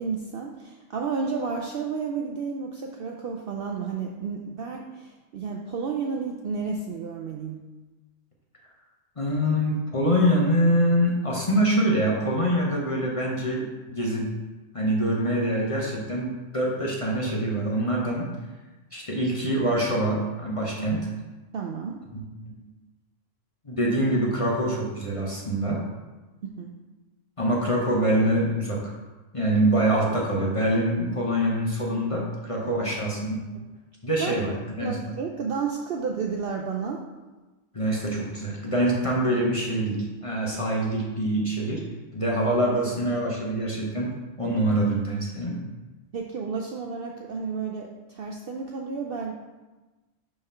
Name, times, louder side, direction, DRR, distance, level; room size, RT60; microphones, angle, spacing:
voice 1, 0.0-7.7 21.5-22.0 26.4-26.7 32.6-33.0 34.2-34.4 34.8-37.0 46.1-49.3, right 5 dB, 65° right, 0 dB, 0.6 m, -32 dB
voice 2, 9.2-14.3 14.7-18.3 18.9-21.1 22.1-22.2 23.6-25.8 27.4-28.9 29.3-33.4 34.0-35.0 37.7-41.8 42.1-45.6, right 1 dB, 30° left, -3 dB, 0.8 m, -25 dB
5.4 x 3.4 x 5.4 m, 1.2 s
omnidirectional pair, 1.4 m